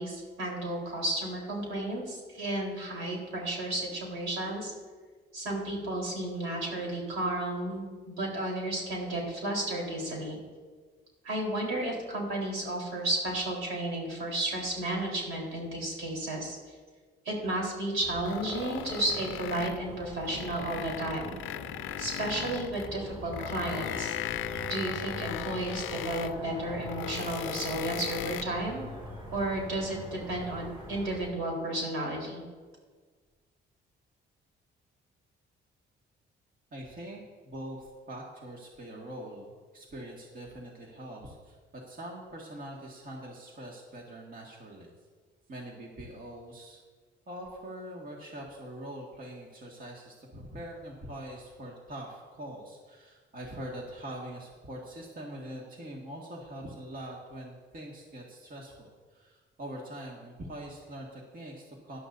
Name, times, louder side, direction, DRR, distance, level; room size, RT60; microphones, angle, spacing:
voice 1, 0.0-4.7 5.3-10.4 11.2-16.6 17.2-21.4 22.0-24.1 24.7-28.9 29.3-32.4, right 1 dB, 85° right, -1 dB, 4.0 m, -33 dB
sound 1, 18.0-31.3, equal, 25° right, 2.8 m, -44 dB
sound 2, 18.3-19.9 20.2-22.9 23.3-26.4 26.8-28.4, left 12 dB, 80° left, 0.5 m, -37 dB
voice 2, 36.7-44.9 45.5-46.8 47.3-62.0, right 1 dB, 45° right, -2 dB, 2.0 m, -43 dB
17.5 x 11.5 x 2.7 m, 1.5 s
cardioid pair, 90°, 20 cm